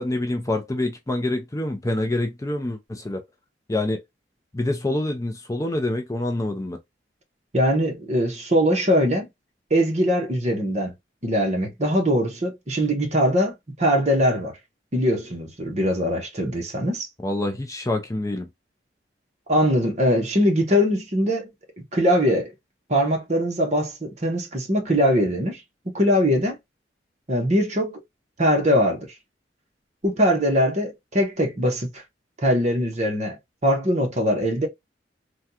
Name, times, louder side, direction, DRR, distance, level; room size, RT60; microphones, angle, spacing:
voice 1, 0.0-3.2 3.7-4.0 4.5-6.8 17.2-18.5, left 1 dB, 20° left, 0.5 m, -26 dB
voice 2, 7.5-9.3 9.7-10.9 11.2-14.5 14.9-17.1 19.5-21.5 21.9-22.5 22.9-25.6 25.9-26.6 27.3-28.0 28.4-29.1 30.0-32.0 32.4-33.4 33.6-34.7, equal, 40° right, 1.1 m, -21 dB
3.5 x 2.3 x 2.7 m
head